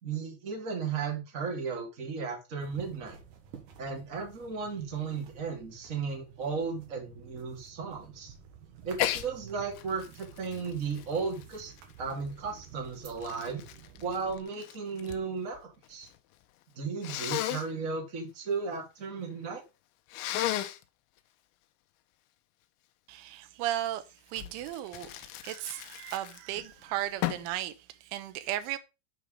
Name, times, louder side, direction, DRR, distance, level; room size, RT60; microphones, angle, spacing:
voice 1, 0.0-3.2 3.8-8.3 8.8-11.7 12.0-13.6 14.0-16.1 16.7-19.6, right 5 dB, 30° right, 1.4 m, -35 dB
sound 1, 2.6-14.4, right 8 dB, 65° right, 2.1 m, -52 dB
Sneeze, 8.9-9.3 9.7-12.1 12.8-15.2 15.5-16.2 17.0-17.7 20.1-20.8 24.3-26.6 27.2-27.5, left 13 dB, 80° left, 3.0 m, -35 dB
voice 2, 23.1-24.0 24.3-28.8, right 13 dB, 80° right, 3.3 m, -35 dB
9.1 x 4.8 x 5.1 m
omnidirectional pair, 5.5 m